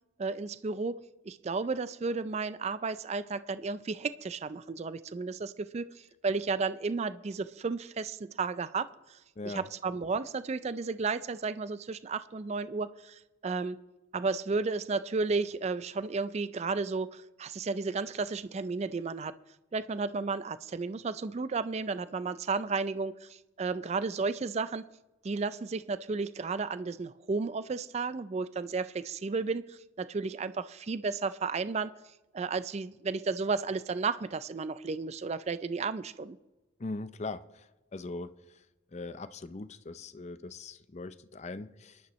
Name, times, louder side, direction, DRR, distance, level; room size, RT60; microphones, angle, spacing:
voice 1, 0.2-0.9 1.3-9.2 9.4-13.8 14.1-19.3 19.7-24.8 25.2-31.9 32.3-36.4, right 4 dB, 30° right, 0.3 m, -33 dB
voice 2, 9.4-9.7 36.8-37.6 37.9-38.3 38.9-42.0, left 3 dB, 35° left, 0.5 m, -40 dB
24.0 x 11.0 x 3.1 m
head